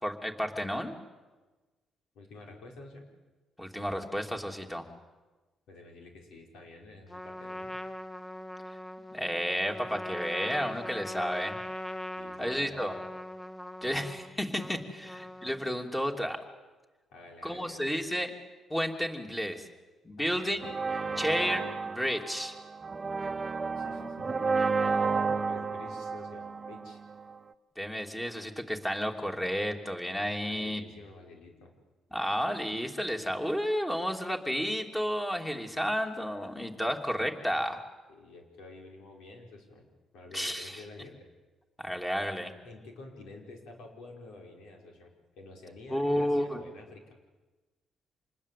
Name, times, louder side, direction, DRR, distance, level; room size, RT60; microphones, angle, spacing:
voice 1, 0.0-0.9 3.6-4.9 9.1-11.6 12.4-12.9 13.8-16.4 17.4-18.3 18.7-19.7 20.0-20.7 21.2-21.7 21.9-22.6 27.8-30.8 32.1-37.8 40.3-40.8 41.8-42.5 45.9-46.6, equal, 10° left, 4 dB, 3.0 m, -31 dB
voice 2, 2.1-3.0 5.7-7.7 12.2-13.0 13.9-14.0 15.3-15.4 17.1-17.9 20.2-21.4 23.8-27.0 30.4-31.7 38.1-39.8 40.1-41.3 42.6-47.1, left 2 dB, 85° left, 2 dB, 5.3 m, -49 dB
Trumpet, 7.1-15.8, left 1 dB, 30° left, 1.9 m, -41 dB
sound 1, 20.6-27.4, right 4 dB, 30° right, 1.0 m, -32 dB
26.5 x 20.5 x 8.5 m, 1.3 s
cardioid pair, 90°, 0 cm